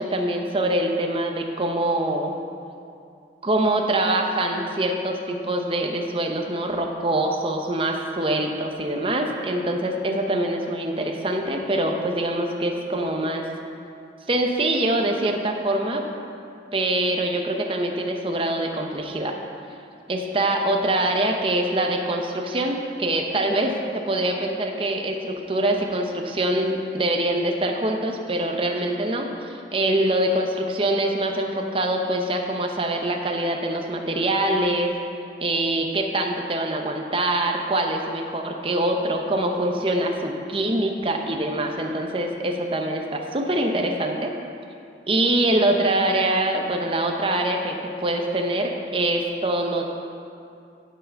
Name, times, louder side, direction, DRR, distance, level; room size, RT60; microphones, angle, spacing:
voice 1, 0.0-2.3 3.4-13.4 14.3-16.0 16.7-19.4 20.1-34.9 35.4-44.3 45.1-49.8, right 1 dB, 30° right, 3 dB, 0.6 m, -24 dB
11.0 x 4.8 x 5.1 m, 2.5 s
head